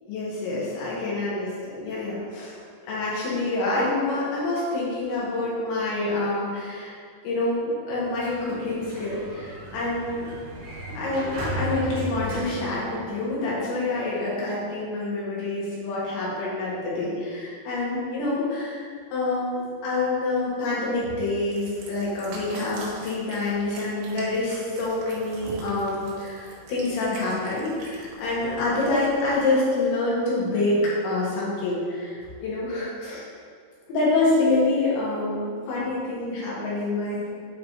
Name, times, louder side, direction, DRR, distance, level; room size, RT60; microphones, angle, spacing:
voice 1, 0.1-2.6 2.9-7.0 7.2-10.3 11.0-33.3 33.9-37.3, left 2 dB, 85° left, -7 dB, 3.7 m, -27 dB
Sliding door, 7.9-13.6, equal, 70° right, 2.7 m, -35 dB
Cat, 21.2-29.4, right 2 dB, 85° right, 3.2 m, -44 dB
8.4 x 3.0 x 4.0 m, 2.1 s
omnidirectional pair, 5.0 m